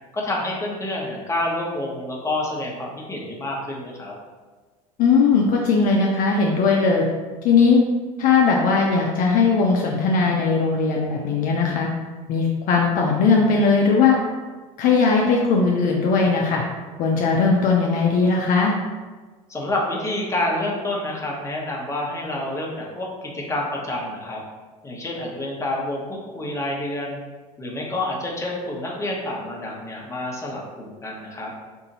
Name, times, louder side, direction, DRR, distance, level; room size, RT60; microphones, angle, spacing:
voice 1, 0.1-4.1 19.5-24.4 24.8-27.2 27.6-31.5, left 1 dB, 15° left, -2 dB, 0.9 m, -28 dB
voice 2, 5.0-7.1 7.4-7.8 8.2-11.9 12.3-14.2 14.8-16.6 17.0-18.8, left 4 dB, 50° left, -1 dB, 0.5 m, -18 dB
2.7 x 2.7 x 3.9 m, 1.3 s
hypercardioid pair, 70°, 18 cm